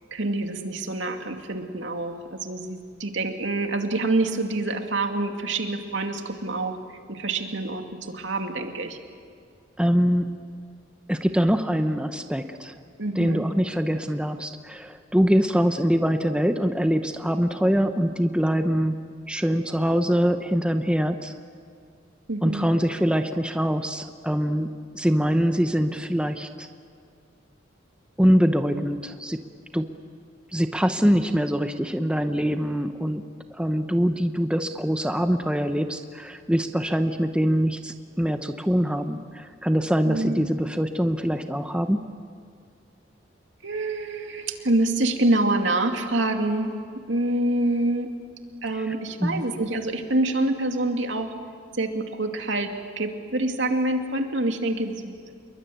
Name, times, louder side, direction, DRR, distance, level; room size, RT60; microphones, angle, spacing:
voice 1, 0.1-6.8 7.1-9.0 13.0-13.4 22.3-22.7 40.1-40.4 43.6-46.7 47.1-48.1 48.6-51.3 51.8-52.7 53.0-55.3, right 2 dB, 75° right, 4 dB, 2.5 m, -26 dB
voice 2, 9.8-10.5 11.1-12.8 13.1-19.0 19.3-21.3 22.4-26.7 28.2-29.4 29.7-29.9 30.5-33.2 33.5-42.1 48.7-48.9 49.2-49.5, equal, 5° right, 7 dB, 0.9 m, -24 dB
28.0 x 22.5 x 9.4 m, 2.2 s
head